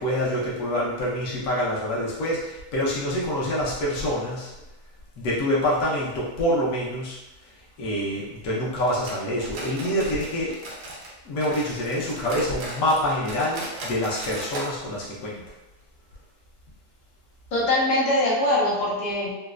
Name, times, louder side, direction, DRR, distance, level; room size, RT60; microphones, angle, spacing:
voice 1, 0.0-4.5 5.2-7.2 7.8-10.5 11.2-15.4, equal, 65° left, -6 dB, 1.2 m, -26 dB
sound 1, 8.9-11.1 11.4-14.7 15.0-15.1 15.5-15.6 16.2-16.3, right 1 dB, 80° right, 1.2 m, -37 dB
voice 2, 17.5-19.4, left 1 dB, 90° left, -5 dB, 1.4 m, -22 dB
4.2 x 2.1 x 2.4 m, 1.0 s
omnidirectional pair, 1.7 m